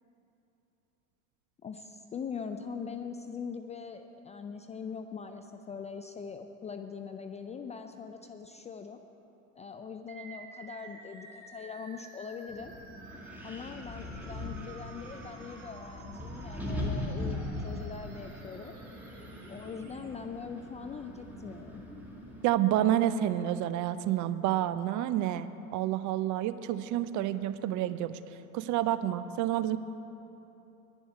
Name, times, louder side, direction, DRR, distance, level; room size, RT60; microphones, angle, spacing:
voice 1, 1.6-9.0 9.6-12.7 13.4-18.8 19.5-21.8, left 6 dB, 15° left, 7 dB, 0.3 m, -42 dB
sound 1, 10.1-20.1, right 4 dB, 80° right, 2.4 m, -52 dB
Wind, 12.5-22.4, left 1 dB, 5° right, 2.2 m, -40 dB
voice 2, 22.4-29.8, right 12 dB, 45° right, 13 dB, 0.6 m, -29 dB
10.0 x 7.2 x 9.5 m, 3.0 s
hypercardioid pair, 85°, 42 cm